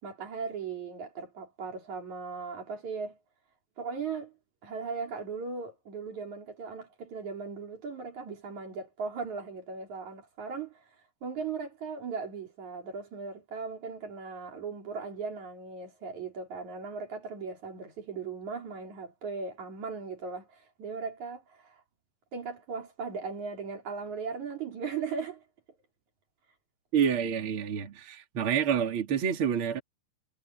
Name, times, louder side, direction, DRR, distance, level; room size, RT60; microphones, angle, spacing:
voice 1, 0.0-3.2 3.8-4.4 4.6-10.8 11.2-21.8 22.3-25.4, right 5 dB, 55° right, 4.7 m, -38 dB
voice 2, 26.9-29.8, right 8 dB, 40° right, 3.4 m, -28 dB
omnidirectional pair, 4.0 m